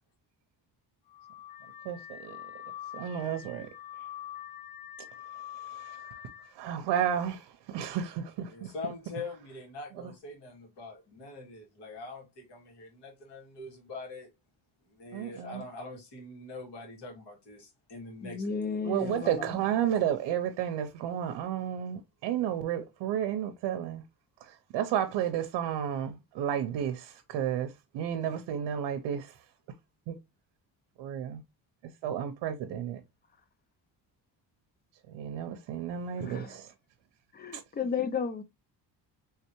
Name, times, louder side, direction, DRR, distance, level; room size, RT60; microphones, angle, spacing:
Car / Alarm, 1.1-6.5, left 12 dB, 55° left, 1.0 m, -45 dB
voice 1, 1.8-2.5 2.9-3.7 4.0-4.1 5.5-6.2 6.5-8.7 10.0-10.1 15.1-15.6 18.8-24.0 24.4-29.4 30.1-30.2 31.0-31.4 31.8-33.0 35.1-36.7 37.5-37.6, right 9 dB, 85° right, 0.6 m, -32 dB
voice 2, 8.5-14.3 14.9-18.4 19.0-19.4, left 3 dB, 70° left, 2.2 m, -43 dB
voice 3, 18.2-19.6 36.2-36.6 37.3-38.4, left 5 dB, 25° left, 0.3 m, -33 dB
3.4 x 3.3 x 2.9 m
cardioid pair, 130°, 42 cm